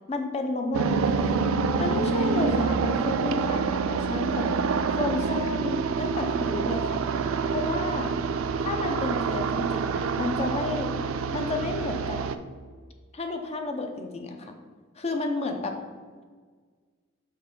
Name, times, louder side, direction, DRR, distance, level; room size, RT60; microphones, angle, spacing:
voice 1, 0.1-1.4 1.8-4.7 5.0-7.0 7.5-8.1 8.6-10.9 11.3-12.2 13.1-14.5 15.0-15.7, left 2 dB, 30° left, 4 dB, 0.6 m, -31 dB
sound 1, 0.7-12.4, right 5 dB, 80° right, 0.4 m, -27 dB
5.5 x 3.3 x 5.3 m, 1.5 s
head